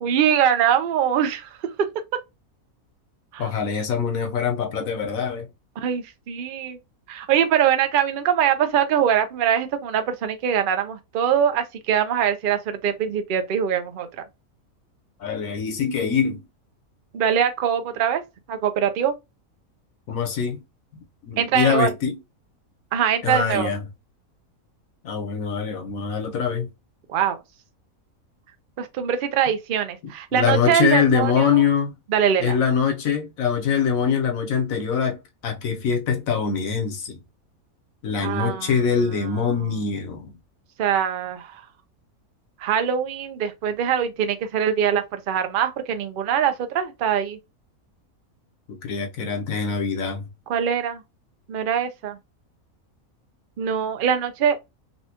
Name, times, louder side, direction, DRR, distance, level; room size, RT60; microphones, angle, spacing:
voice 1, 0.0-1.7 3.3-3.5 5.8-6.8 7.1-14.2 17.1-18.2 18.5-19.1 21.4-21.9 22.9-23.7 27.1-27.4 28.8-31.6 32.1-32.6 38.2-38.8 40.8-41.6 42.6-47.4 50.5-51.0 51.5-52.2 53.6-54.6, right 8 dB, 55° right, 0.6 m, -23 dB
voice 2, 3.4-5.5 15.2-16.4 20.1-20.6 21.3-22.2 23.2-23.8 25.0-26.7 30.3-31.9 32.4-37.2 38.0-40.3 48.7-50.3, left 6 dB, 70° left, 1.2 m, -23 dB
4.2 x 2.2 x 2.8 m
omnidirectional pair, 1.5 m